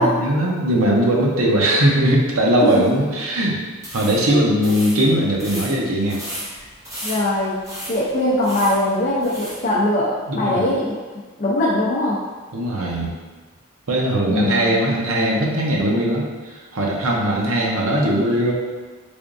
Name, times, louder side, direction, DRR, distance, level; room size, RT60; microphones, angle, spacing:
voice 1, 0.0-3.6 3.9-6.2 10.3-10.6 12.5-13.2 13.9-18.5, right 1 dB, 75° right, -2 dB, 0.7 m, -19 dB
sound 1, 3.7-9.7, equal, 15° right, 0.6 m, -35 dB
voice 2, 7.0-11.0 11.4-12.2 14.3-14.7, left 1 dB, 40° left, -8 dB, 0.5 m, -21 dB
3.5 x 3.4 x 2.5 m, 1.3 s
head